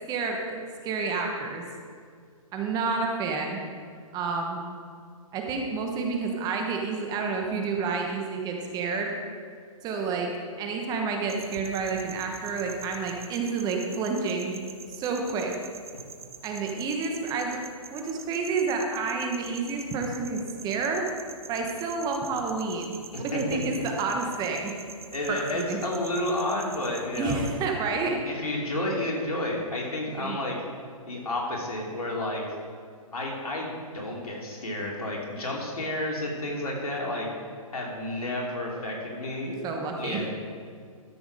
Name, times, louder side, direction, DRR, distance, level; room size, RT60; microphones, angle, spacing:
voice 1, 0.1-1.6 2.5-3.6 4.1-4.6 5.3-9.2 9.8-10.3 10.6-14.6 14.9-15.5 16.4-17.6 17.9-21.1 21.5-24.7 25.3-25.8 27.2-28.2 30.2-30.4 39.6-40.3, right 4 dB, 20° right, 2 dB, 1.1 m, -29 dB
sound 1, 11.3-27.6, right 5 dB, 85° right, 1.0 m, -45 dB
voice 2, 23.1-23.6 25.1-27.4 28.2-30.5 31.1-32.4 33.1-37.3 37.7-39.6 40.0-40.3, left 1 dB, 90° left, -2 dB, 2.9 m, -31 dB
12.5 x 6.2 x 4.9 m, 2.1 s
hypercardioid pair, 140°, 18 cm